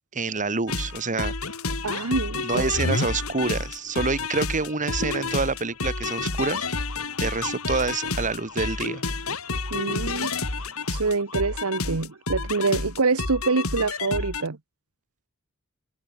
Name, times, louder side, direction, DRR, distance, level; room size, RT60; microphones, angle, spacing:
voice 1, 0.1-1.3 2.4-6.7 7.2-9.0, right 3 dB, 35° right, 1.9 m, -27 dB
sound 1, 0.7-14.5, left 3 dB, 75° left, 4.0 m, -30 dB
voice 2, 1.8-2.7 9.7-10.3 10.9-14.6, right 4 dB, 80° right, 1.2 m, -25 dB
head